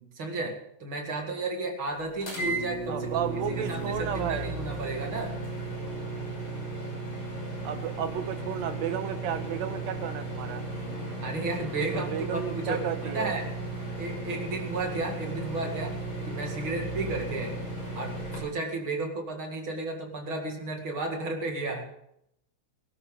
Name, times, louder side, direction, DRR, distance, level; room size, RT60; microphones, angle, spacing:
voice 1, 0.0-5.4 11.2-13.5 14.0-16.0 16.3-17.6 17.9-21.8, right 2 dB, 45° right, 2 dB, 2.8 m, -33 dB
sound 1, 2.2-18.4, right 2 dB, 40° left, 6.6 m, -35 dB
voice 2, 2.9-4.6 7.6-10.6 11.9-13.4, right 8 dB, 75° right, 8 dB, 2.4 m, -33 dB
22.5 x 12.5 x 3.9 m, 0.75 s
omnidirectional pair, 3.3 m